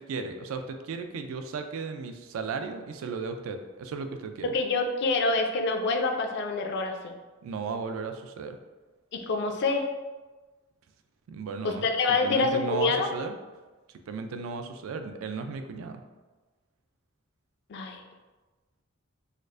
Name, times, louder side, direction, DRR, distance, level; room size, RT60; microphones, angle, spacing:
voice 1, 0.0-4.5 7.4-8.6 11.3-13.4 14.1-16.0, right 4 dB, 75° right, 7 dB, 0.3 m, -35 dB
voice 2, 4.4-7.1 9.1-9.9 11.6-13.1 17.7-18.0, left 3 dB, 55° left, 4 dB, 0.4 m, -26 dB
4.3 x 2.4 x 2.4 m, 1.3 s
head